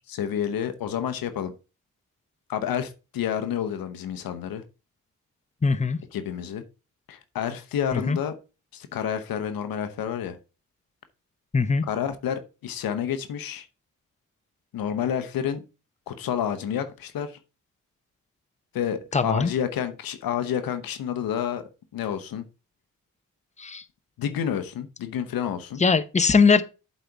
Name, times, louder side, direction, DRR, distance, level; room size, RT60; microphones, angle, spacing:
voice 1, 0.1-1.5 2.5-4.6 6.1-6.6 7.1-8.3 8.7-10.4 11.9-13.7 14.7-15.6 16.1-17.4 18.7-21.6 21.9-22.5 24.2-25.8, left 9 dB, 85° left, 0.8 m, -29 dB
voice 2, 5.6-6.0 7.9-8.2 11.5-11.8 19.1-19.5 23.6-23.8 25.8-26.6, left 4 dB, 20° left, 0.8 m, -20 dB
7.8 x 4.1 x 4.6 m
cardioid pair, 50°, 34 cm